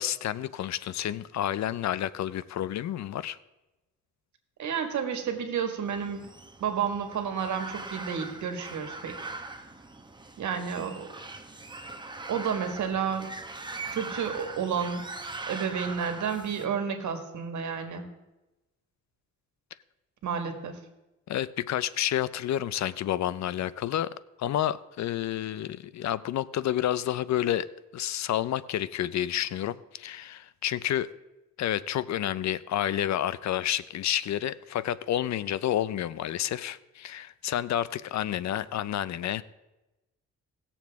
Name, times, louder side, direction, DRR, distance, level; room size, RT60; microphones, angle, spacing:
voice 1, 0.0-3.4 21.3-24.1 24.4-27.7 27.9-31.1 31.6-39.4, left 11 dB, 65° left, 17 dB, 0.5 m, -30 dB
voice 2, 4.6-6.3 6.6-9.1 10.4-11.1 12.3-13.3 13.9-15.0 15.5-18.0 20.2-20.8, right 7 dB, 75° right, 6 dB, 1.7 m, -31 dB
sound 1, 5.9-16.7, right 3 dB, 15° right, 1.1 m, -41 dB
18.5 x 7.1 x 3.5 m, 1.0 s
cardioid pair, 85°, 30 cm